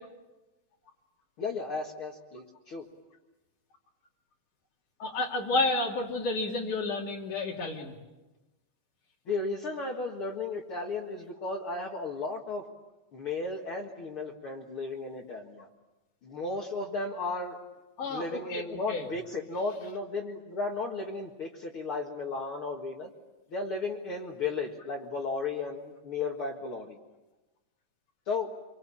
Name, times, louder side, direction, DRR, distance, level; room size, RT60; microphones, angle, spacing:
voice 1, 1.4-2.8 9.3-12.7 13.1-15.7 16.2-17.6 18.1-23.1 23.5-27.0 28.3-28.5, left 3 dB, 50° left, -2 dB, 2.5 m, -34 dB
voice 2, 5.0-7.9 18.0-19.1, left 2 dB, 80° left, -2 dB, 4.1 m, -31 dB
27.0 x 24.0 x 8.7 m, 1.1 s
omnidirectional pair, 3.5 m